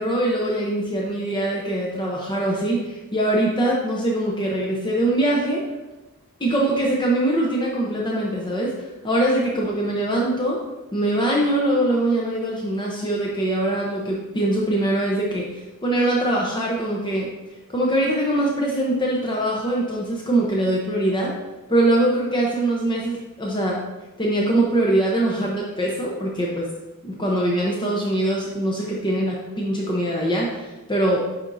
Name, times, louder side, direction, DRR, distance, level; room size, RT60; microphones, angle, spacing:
voice 1, 0.0-5.6 6.4-10.6 10.9-17.3 17.7-21.3 21.7-23.8 24.2-26.7 27.0-31.2, right 1 dB, 20° left, -3 dB, 0.7 m, -22 dB
10.0 x 4.3 x 2.7 m, 1.1 s
head